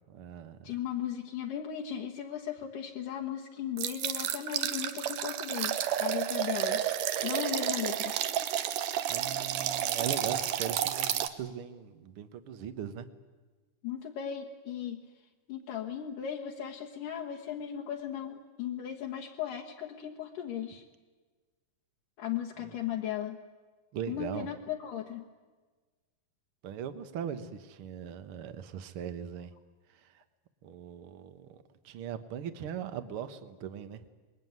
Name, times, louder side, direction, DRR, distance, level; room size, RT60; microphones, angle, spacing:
voice 1, 0.1-0.8 9.1-13.1 22.6-22.7 23.9-24.5 26.6-29.5 29.9-30.2 30.6-34.0, right 8 dB, 55° right, 10 dB, 1.7 m, -40 dB
voice 2, 0.6-6.8 7.2-8.1 13.8-15.0 15.5-20.8 22.2-23.4 24.1-25.3, left 9 dB, 75° left, 0 dB, 2.9 m, -37 dB
sound 1, 3.8-11.3, right 11 dB, 70° right, 2.5 m, -31 dB
25.5 x 21.5 x 9.5 m, 1.3 s
omnidirectional pair, 3.9 m